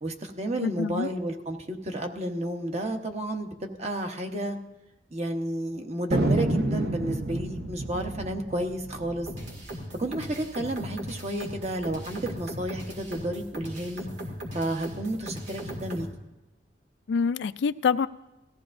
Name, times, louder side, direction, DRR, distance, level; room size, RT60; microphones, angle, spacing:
voice 1, 0.0-4.6 5.1-9.3 10.0-14.1 14.5-16.1, right 1 dB, 40° right, 4 dB, 1.0 m, -31 dB
voice 2, 0.6-1.1 17.1-18.1, left 5 dB, 75° left, 16 dB, 0.4 m, -26 dB
Thunder, 6.1-10.9 11.2-11.3 11.5-12.0 12.5-13.7, right 2 dB, 65° right, 0.8 m, -30 dB
sound 1, 9.3-16.1, equal, 85° right, 2.2 m, -38 dB
18.0 x 14.0 x 2.6 m, 0.99 s
head